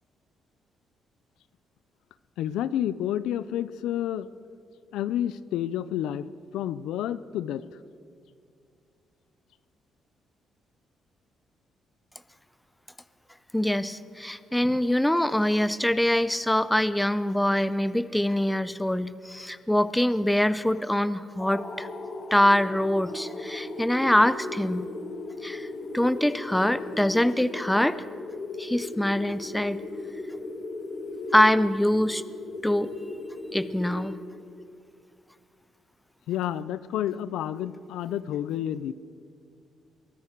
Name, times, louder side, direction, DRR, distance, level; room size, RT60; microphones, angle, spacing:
voice 1, 2.4-4.3 4.9-6.3 6.5-7.6 36.3-38.9, left 11 dB, 90° left, 16 dB, 0.4 m, -30 dB
voice 2, 13.5-21.9 22.3-24.9 25.4-25.7 25.9-28.0 28.6-29.8 31.3-32.2 32.6-32.9 33.5-34.2, left 1 dB, 5° left, 15 dB, 0.6 m, -24 dB
sound 1, 21.4-34.6, left 2 dB, 50° left, 1.7 m, -37 dB
22.5 x 13.5 x 4.6 m, 2.3 s
cardioid pair, 90°, 0 cm